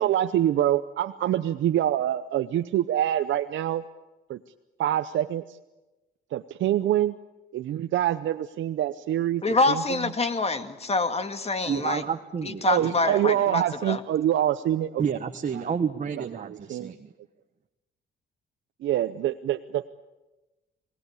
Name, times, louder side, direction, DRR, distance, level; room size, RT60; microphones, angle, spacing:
voice 1, 0.0-3.8 4.3-4.4 4.8-5.6 6.3-7.2 7.5-9.8 12.6-15.2 15.6-15.7 16.2-16.9 18.8-19.9, right 12 dB, 70° right, 8 dB, 0.8 m, -25 dB
voice 2, 9.4-12.0 12.4-14.0, left 3 dB, 30° left, 9 dB, 2.1 m, -26 dB
voice 3, 11.7-13.2 15.0-17.1, right 6 dB, 40° right, 5 dB, 1.3 m, -30 dB
27.0 x 19.0 x 8.4 m, 1.1 s
cardioid pair, 90°, 20 cm